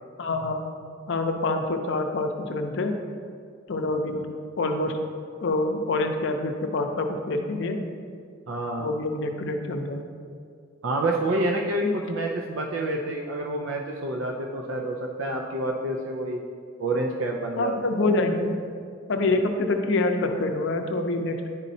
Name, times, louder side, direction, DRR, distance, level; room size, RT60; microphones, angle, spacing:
voice 1, 0.2-0.6 1.1-3.0 3.7-4.3 4.6-5.0 5.4-7.8 8.8-10.1 11.8-12.0 17.6-18.6 19.1-21.4, left 2 dB, 65° left, 5 dB, 0.5 m, -26 dB
voice 2, 8.5-8.9 10.8-16.4 16.8-17.7, right 1 dB, 75° right, 0 dB, 0.5 m, -28 dB
10.5 x 4.1 x 2.7 m, 2.2 s
head